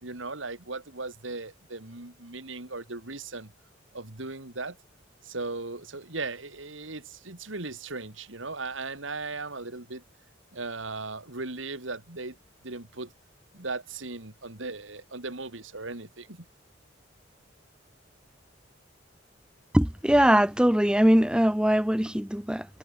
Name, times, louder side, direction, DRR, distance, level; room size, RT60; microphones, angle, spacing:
voice 1, 0.0-3.5 3.9-4.8 5.2-10.0 10.5-12.4 12.6-13.1 13.5-16.4, right 3 dB, 85° right, 3.0 m, -37 dB
voice 2, 19.7-22.7, equal, 5° right, 0.7 m, -21 dB
head